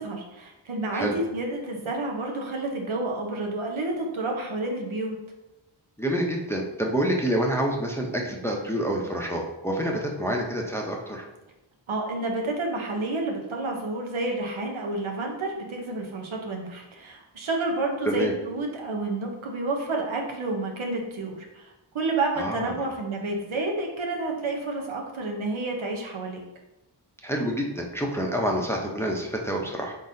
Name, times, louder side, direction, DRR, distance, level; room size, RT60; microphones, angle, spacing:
voice 1, 0.0-5.2 11.9-26.4, right 2 dB, 85° right, 1 dB, 0.8 m, -30 dB
voice 2, 6.0-11.3 18.1-18.3 22.4-22.9 27.2-30.0, right 1 dB, 5° left, 0 dB, 0.6 m, -27 dB
4.0 x 3.8 x 2.6 m, 0.98 s
wide cardioid pair, 55°, 47 cm